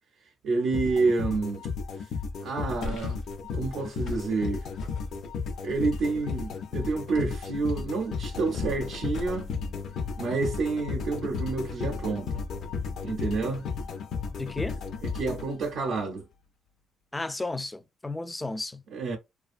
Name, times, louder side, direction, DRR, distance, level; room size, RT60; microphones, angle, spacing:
voice 1, 0.4-1.7 2.4-3.2 3.5-4.7 5.6-9.5 10.2-12.4 13.0-13.7 15.0-16.3 18.9-19.2, right 4 dB, 75° right, 0.5 m, -29 dB
sound 1, 0.7-16.0, left 5 dB, 70° left, 0.5 m, -34 dB
sound 2, 2.8-9.6, left 2 dB, 85° left, 0.8 m, -43 dB
voice 2, 14.4-14.8 17.1-18.8, left 2 dB, 15° left, 0.3 m, -33 dB
2.4 x 2.3 x 2.4 m
cardioid pair, 90°, 0 cm